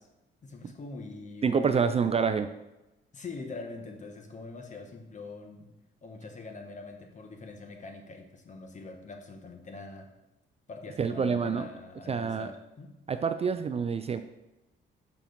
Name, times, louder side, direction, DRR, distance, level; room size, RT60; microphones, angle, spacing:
voice 1, 0.4-2.3 3.1-5.7 6.0-10.1 10.7-12.9, left 3 dB, 40° left, 4 dB, 1.2 m, -43 dB
voice 2, 1.4-2.5 11.0-11.7 12.1-12.5 13.1-14.2, right 6 dB, 30° right, 10 dB, 0.4 m, -27 dB
5.9 x 4.6 x 5.3 m, 0.97 s
cardioid pair, 90°, 20 cm